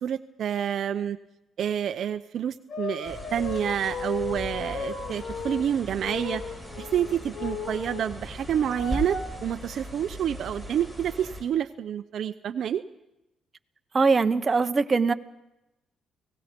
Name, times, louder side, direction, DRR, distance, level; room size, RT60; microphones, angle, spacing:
voice 1, 0.0-1.2 1.6-12.8, right 9 dB, 65° right, 11 dB, 0.6 m, -28 dB
sound 1, 2.7-5.7 6.0-8.1 8.3-9.3 10.0-10.1, left 5 dB, 70° left, 3.9 m, -36 dB
sound 2, 3.0-11.4, equal, 10° left, 7.8 m, -39 dB
voice 2, 13.9-15.1, right 4 dB, 30° right, 9 dB, 1.1 m, -21 dB
29.0 x 18.0 x 5.3 m, 0.93 s
cardioid pair, 90°, 0 cm